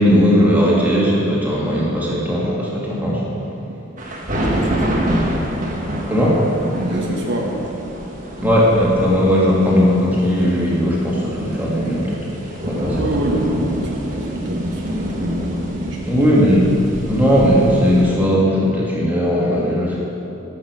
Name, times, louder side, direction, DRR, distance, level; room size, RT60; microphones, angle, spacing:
voice 1, 0.0-3.3 6.1-6.4 8.4-12.3 12.6-13.1 16.1-16.7 17.1-20.0, equal, 10° right, -6 dB, 2.2 m, -17 dB
sound 1, 4.0-18.2, equal, 40° right, 1.5 m, -27 dB
voice 2, 4.5-5.0 6.7-7.6 12.9-16.2, equal, 55° right, -1 dB, 1.4 m, -25 dB
12.0 x 6.6 x 7.6 m, 3.0 s
head